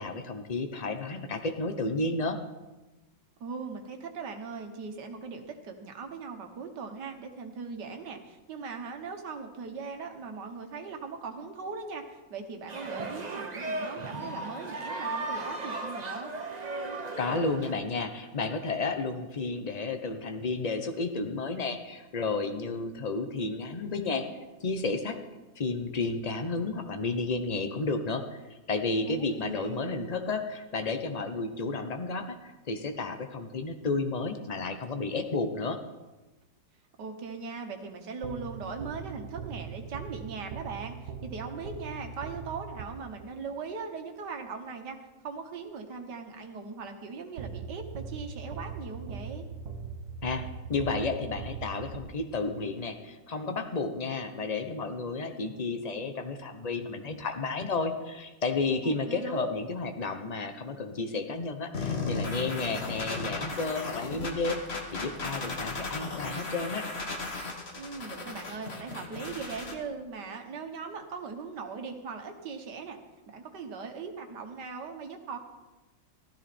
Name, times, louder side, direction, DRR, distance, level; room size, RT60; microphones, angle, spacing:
voice 1, 0.0-2.4 17.2-24.3 24.6-25.2 25.6-35.8 50.2-66.8, left 3 dB, 75° left, 7 dB, 0.3 m, -32 dB
voice 2, 3.4-12.0 12.3-16.3 29.1-29.9 37.0-45.0 45.2-49.5 58.8-59.5 67.8-73.0 73.3-75.4, right 5 dB, 65° right, 5 dB, 1.9 m, -39 dB
sound 1, 12.7-17.7, right 2 dB, 30° right, 0.8 m, -36 dB
sound 2, 38.2-43.3 47.4-52.6, right 5 dB, 80° right, 1.7 m, -41 dB
sound 3, 61.7-69.7, left 3 dB, 35° left, 1.6 m, -36 dB
15.5 x 13.0 x 4.3 m, 1.1 s
omnidirectional pair, 2.0 m